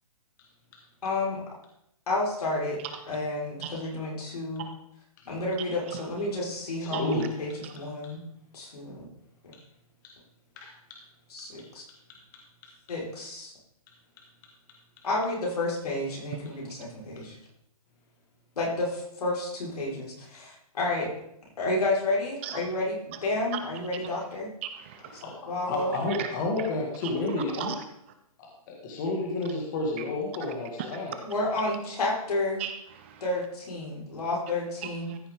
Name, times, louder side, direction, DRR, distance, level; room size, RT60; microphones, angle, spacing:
voice 1, 1.0-1.4 2.1-2.8 3.1-4.6 5.3-8.2 8.5-9.0 9.4-9.5 11.3-11.8 12.9-13.5 15.0-17.4 18.6-21.1 21.6-24.5 25.5-26.0 31.2-32.6 33.2-35.1, left 2 dB, 85° left, -4 dB, 4.8 m, -30 dB
voice 2, 6.8-7.3 10.6-10.7 25.2-27.7 28.9-31.2, left 2 dB, 30° left, 0 dB, 1.8 m, -30 dB
voice 3, 24.6-25.2 26.1-26.3 27.0-27.1 27.5-27.8 30.8-30.9 32.6-33.2 34.8-35.2, right 10 dB, 20° right, 8 dB, 0.5 m, -37 dB
14.0 x 6.8 x 3.7 m, 0.78 s
hypercardioid pair, 165°, 19 cm